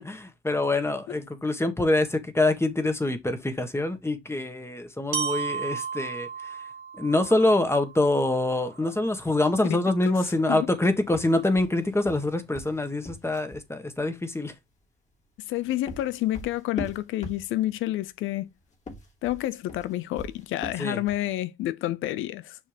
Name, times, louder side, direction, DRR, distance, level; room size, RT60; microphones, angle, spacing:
voice 1, 0.0-6.6 6.9-14.5 20.8-21.0, left 2 dB, 15° left, 1.6 m, -25 dB
Glockenspiel, 5.1-9.1, right 7 dB, 90° right, 1.9 m, -35 dB
sound 1, 11.0-13.7 15.4-17.8 18.7-21.3, left 2 dB, 35° left, 3.0 m, -41 dB
voice 2, 15.5-18.5 19.2-22.6, left 15 dB, 90° left, 0.5 m, -29 dB
6.7 x 5.2 x 3.4 m
cardioid pair, 90°, 20 cm